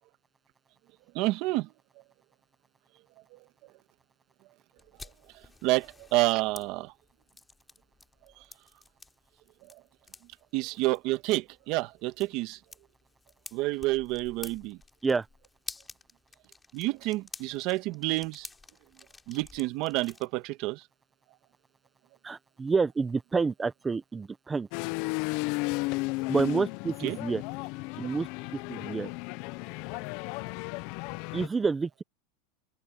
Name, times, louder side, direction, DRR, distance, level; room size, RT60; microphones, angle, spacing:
voice 1, 1.1-1.7 5.6-5.9 6.1-6.9 10.5-12.6 13.5-14.8 16.7-18.5 19.3-20.8 27.0-27.2, right 20 dB, 45° right, 1.4 m, -29 dB
sound 1, 4.8-20.3, left 3 dB, 10° left, 4.3 m, -50 dB
voice 2, 22.2-24.7 26.3-27.4 28.0-29.1 31.3-32.0, right 4 dB, 10° right, 0.7 m, -29 dB
sound 2, 24.7-31.5, left 24 dB, 50° left, 0.5 m, -34 dB
supercardioid pair, 150°, 0 cm